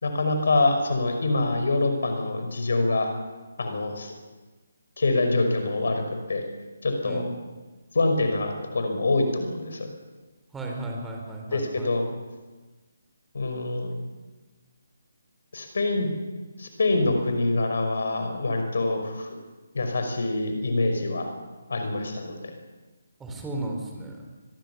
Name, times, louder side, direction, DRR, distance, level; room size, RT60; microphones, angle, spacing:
voice 1, 0.0-3.1 3.6-4.1 5.0-6.4 6.8-7.3 7.9-9.9 11.5-12.0 13.3-14.0 15.5-16.1 16.6-19.4 19.7-21.3 21.7-22.4, left 2 dB, 60° left, 5 dB, 5.4 m, -25 dB
voice 2, 10.5-11.9 23.2-24.3, right 2 dB, 10° right, 0 dB, 4.4 m, -34 dB
25.0 x 21.5 x 7.1 m, 1.3 s
figure-of-eight pair, 145°, 0 cm